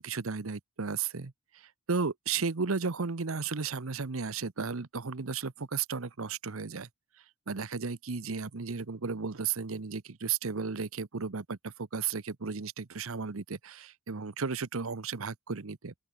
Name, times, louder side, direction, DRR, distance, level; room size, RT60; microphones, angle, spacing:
voice 1, 0.0-6.9 7.5-15.9, right 5 dB, 85° right, 0.9 m, -34 dB
open air
head